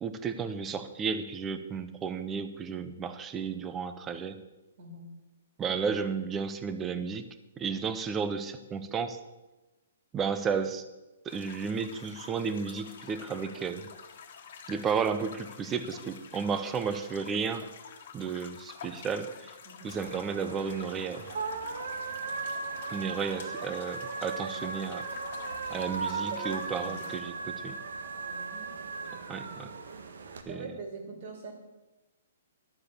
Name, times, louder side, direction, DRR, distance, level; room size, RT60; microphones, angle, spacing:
voice 1, 0.0-4.4 5.6-7.3 7.6-9.2 10.1-10.8 11.2-13.9 14.7-17.7 18.1-19.5 19.8-21.3 22.9-25.1 25.7-27.8 29.3-29.7 30.5-30.7, right 6 dB, 10° right, 11 dB, 0.6 m, -33 dB
voice 2, 4.8-5.1 19.6-19.9 25.7-27.1 27.4-27.5 28.2-28.7 29.4-29.5 30.4-31.5, right 3 dB, 40° right, 4 dB, 2.4 m, -44 dB
sound 1, 11.3-27.2, left 6 dB, 45° left, 1.6 m, -48 dB
sound 2, 19.9-30.4, right 4 dB, 80° right, 1.4 m, -37 dB
11.5 x 7.3 x 6.7 m, 1.1 s
hypercardioid pair, 175°, 0 cm